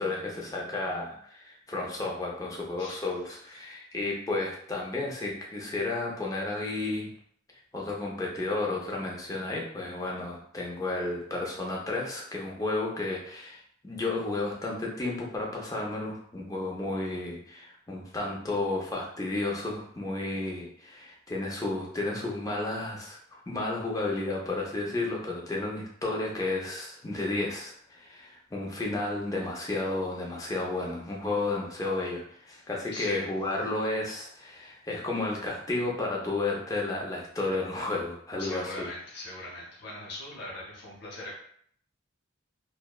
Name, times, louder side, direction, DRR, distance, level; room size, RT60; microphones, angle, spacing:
voice 1, 0.0-7.1 7.7-23.2 23.5-38.9, left 2 dB, 15° left, -2 dB, 0.4 m, -32 dB
voice 2, 32.9-33.3 38.4-41.3, left 1 dB, 50° left, -4 dB, 0.7 m, -40 dB
2.7 x 2.1 x 2.2 m, 0.63 s
head